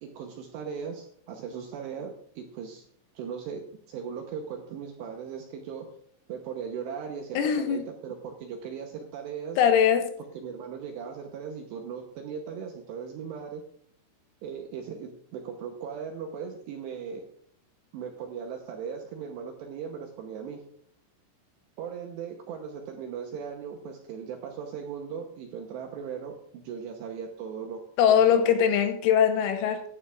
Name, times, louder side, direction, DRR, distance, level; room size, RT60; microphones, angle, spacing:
voice 1, 0.0-2.9 3.2-5.9 6.3-9.6 10.3-13.6 14.4-17.3 17.9-20.6 21.8-27.8 28.1-28.7, right 7 dB, 80° right, 2.6 m, -38 dB
voice 2, 7.4-7.9 9.6-10.1 28.0-29.8, left 8 dB, 80° left, 3.4 m, -21 dB
15.0 x 10.0 x 2.4 m
omnidirectional pair, 5.9 m